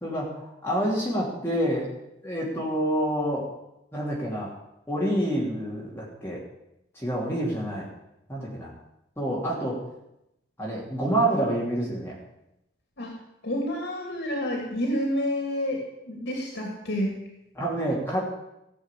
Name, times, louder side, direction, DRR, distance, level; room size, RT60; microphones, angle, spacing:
voice 1, 0.0-1.9 2.2-3.5 3.9-4.5 4.9-6.4 6.9-7.9 8.3-8.7 9.2-9.8 10.6-12.2 17.5-18.2, right 1 dB, 15° left, -5 dB, 3.1 m, -27 dB
voice 2, 13.4-17.2, equal, 80° left, 0 dB, 2.7 m, -29 dB
15.5 x 6.4 x 8.4 m, 0.86 s
head